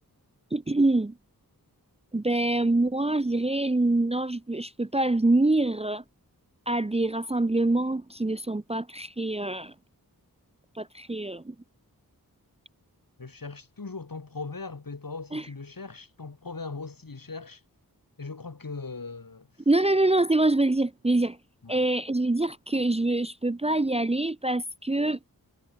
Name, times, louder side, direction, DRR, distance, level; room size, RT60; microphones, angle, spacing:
voice 1, 0.5-1.1 2.1-6.0 6.7-9.7 10.7-11.5 15.3-15.4 19.7-21.4 21.7-25.2, right 2 dB, 15° right, 0.7 m, -25 dB
voice 2, 13.2-17.6 18.2-19.7 21.6-21.8, left 4 dB, 65° left, 5.5 m, -39 dB
wide cardioid pair, 65°, 37 cm